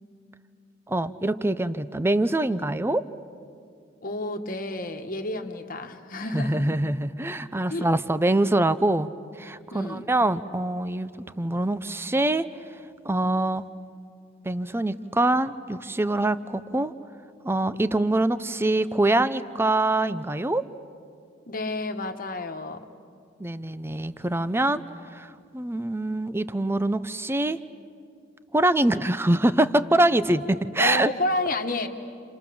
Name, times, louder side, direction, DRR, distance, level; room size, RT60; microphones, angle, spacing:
voice 1, 0.9-3.1 6.3-9.1 9.4-11.1 11.4-12.5 13.0-13.6 14.4-16.9 17.4-20.6 23.4-27.6 28.5-31.1, right 1 dB, 10° right, 14 dB, 0.6 m, -24 dB
voice 2, 4.0-6.7 7.7-7.9 9.7-10.1 21.5-22.9 30.8-31.9, left 2 dB, 45° left, 6 dB, 1.5 m, -30 dB
30.0 x 28.5 x 7.0 m, 2.4 s
head